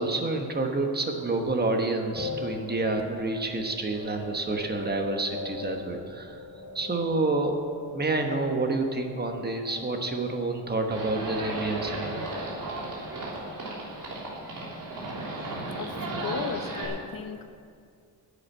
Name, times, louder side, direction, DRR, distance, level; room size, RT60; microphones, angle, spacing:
voice 1, 0.0-6.4 6.7-7.6 7.9-12.3 13.3-13.4, right 2 dB, 25° right, 4 dB, 1.1 m, -28 dB
sound 1, 2.1-13.6, left 4 dB, 25° left, 2.8 m, -42 dB
Livestock farm animals working animals, 10.9-16.8, right 2 dB, 50° right, 3.4 m, -34 dB
voice 2, 15.8-17.5, left 7 dB, 55° left, 8 dB, 0.8 m, -36 dB
10.5 x 8.5 x 8.8 m, 2.3 s
wide cardioid pair, 165°, 42 cm